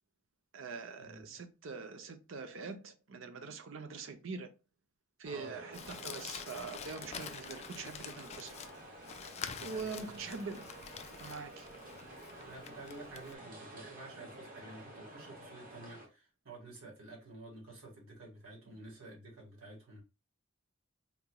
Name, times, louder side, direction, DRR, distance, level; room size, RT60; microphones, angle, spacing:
voice 1, 0.5-4.5 5.2-8.6 9.6-10.7 11.2-11.7, right 4 dB, 70° right, 0.6 m, -43 dB
sound 1, 5.2-16.1, right 1 dB, 45° right, 1.0 m, -51 dB
Crumpling crinkling, 5.7-13.3, left 7 dB, 30° left, 0.3 m, -47 dB
voice 2, 9.5-10.1 12.4-20.0, right 2 dB, 90° right, 1.5 m, -51 dB
3.8 x 2.9 x 2.2 m
head